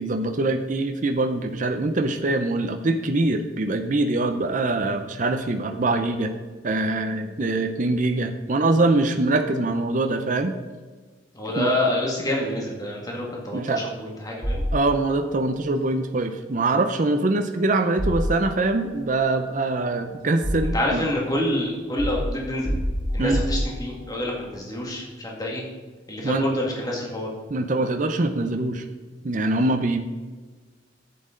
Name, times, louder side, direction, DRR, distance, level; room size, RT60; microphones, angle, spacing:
voice 1, 0.0-6.4 6.6-10.6 11.6-11.7 13.5-13.8 14.7-21.1 23.2-23.4 26.2-26.5 27.5-28.8 29.2-30.0, right 2 dB, 45° right, 6 dB, 0.6 m, -23 dB
voice 2, 11.3-14.7 20.7-22.8 23.1-25.6 26.1-27.3, left 1 dB, 20° left, -2 dB, 1.9 m, -27 dB
sound 1, 14.4-15.3 18.0-18.9 19.8-21.1 22.0-24.2, equal, 25° right, 3.0 m, -28 dB
11.0 x 8.5 x 3.8 m, 1.4 s
head